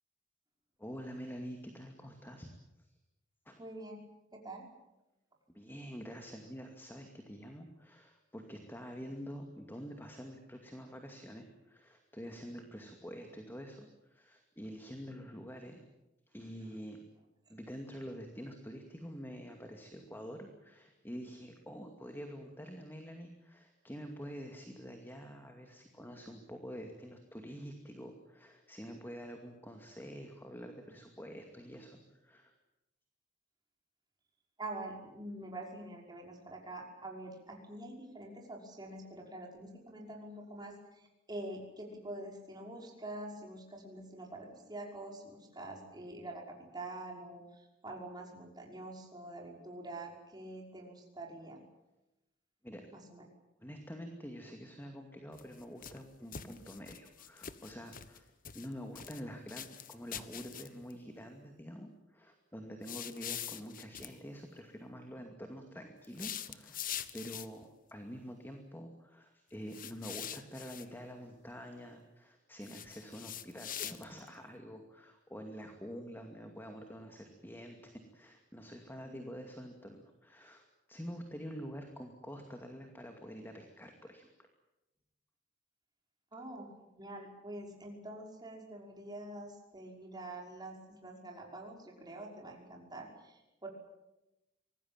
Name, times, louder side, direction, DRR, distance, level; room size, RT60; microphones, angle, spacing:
voice 1, 0.8-2.5 3.5-3.6 5.5-15.8 16.3-17.0 17.5-32.5 52.6-52.8 53.6-66.9 67.1-84.3, equal, 10° left, 4 dB, 2.4 m, -47 dB
voice 2, 3.6-4.0 4.3-4.7 34.6-51.6 52.9-53.2 79.1-79.3 86.3-93.7, right 1 dB, 20° right, 0 dB, 5.7 m, -46 dB
sound 1, 55.3-56.0 56.3-58.2 58.4-59.2 59.5-60.9 62.8-64.1 66.0-67.6 69.7-70.9 72.6-74.3, left 10 dB, 45° left, 1.3 m, -44 dB
25.0 x 19.5 x 9.0 m, 0.95 s
head